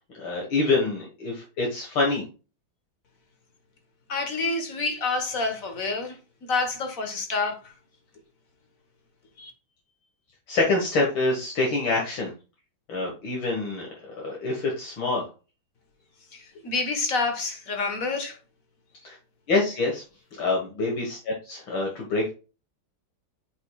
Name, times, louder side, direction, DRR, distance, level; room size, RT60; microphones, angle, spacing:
voice 1, 0.1-2.2 10.5-12.3 12.9-15.2 19.0-19.2 19.5-20.0 20.4-22.3, left 3 dB, 70° left, 2.3 m, -26 dB
voice 2, 4.1-7.7 9.4-9.5 16.3-18.4, left 3 dB, 45° left, 1.5 m, -28 dB
8.1 x 5.3 x 2.3 m
omnidirectional pair, 2.3 m